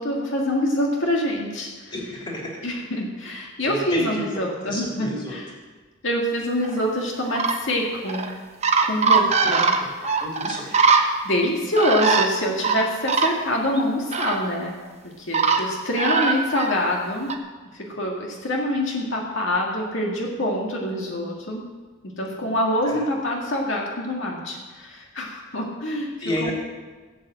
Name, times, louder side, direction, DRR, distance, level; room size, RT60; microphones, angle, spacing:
voice 1, 0.0-1.9 2.6-5.5 6.0-8.2 8.8-10.3 10.6-10.9 11.2-14.8 15.2-17.3 17.7-21.7 22.0-26.1 26.4-26.5, left 1 dB, 60° left, -1 dB, 2.1 m, -25 dB
voice 2, 1.9-2.5 3.6-4.2 4.6-5.4 9.5-9.9 10.2-10.7 22.4-22.5 22.8-23.0 26.2-26.5, left 1 dB, 20° left, -3 dB, 3.1 m, -31 dB
sound 1, 6.6-6.8 7.3-7.6 8.1-8.3 8.6-11.0 11.8-12.3 12.6-13.3 13.8-13.9 14.1-14.4 15.3-15.6 16.0-16.7 17.3-17.4, right 4 dB, 30° right, 1.1 m, -20 dB
16.5 x 8.0 x 7.7 m, 1.3 s
head